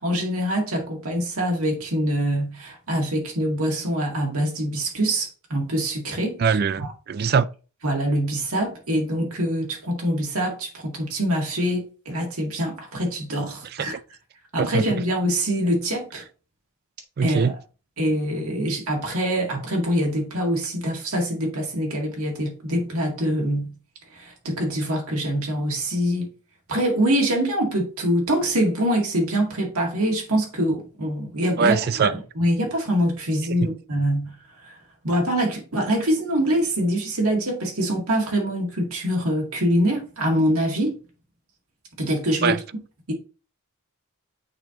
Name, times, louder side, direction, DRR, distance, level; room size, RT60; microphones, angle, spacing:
voice 1, 0.0-6.4 6.8-6.9 7.2-7.3 7.8-13.9 14.5-16.2 17.2-17.5 18.0-23.7 24.1-26.3 26.7-34.3 34.6-34.8 35.0-41.0 42.0-42.6 43.1-43.2, equal, 80° right, 1.9 m, -24 dB
voice 2, 6.4-7.5 13.8-13.9 14.6-14.8 17.2-17.5 31.6-32.1 42.4-42.6, right 6 dB, 45° right, 0.3 m, -21 dB
8.6 x 3.0 x 3.7 m
head